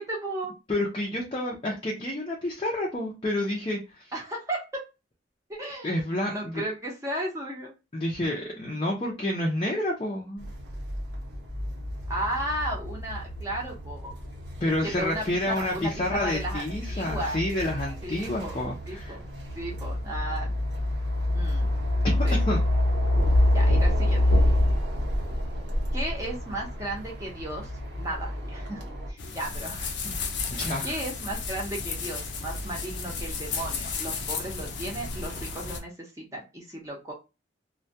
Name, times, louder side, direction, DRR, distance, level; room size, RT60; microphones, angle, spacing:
voice 1, 0.0-0.5 4.1-4.9 5.5-5.9 6.3-7.7 12.1-14.1 14.8-17.4 18.0-18.6 18.9-19.2 19.6-20.5 21.3-21.7 22.2-22.4 23.5-24.3 25.9-27.7 28.0-29.9 30.4-30.5 30.8-37.1, right 1 dB, 15° right, -2 dB, 0.7 m, -34 dB
voice 2, 0.7-4.1 5.8-6.6 7.9-10.5 14.6-19.2 22.3-22.6 30.5-30.9, left 1 dB, 30° left, -2 dB, 0.4 m, -29 dB
sound 1, 10.4-29.1, left 1 dB, 80° right, 0.8 m, -27 dB
sound 2, 29.2-35.8, left 4 dB, 85° left, 0.5 m, -33 dB
2.2 x 2.2 x 2.6 m, 0.27 s
head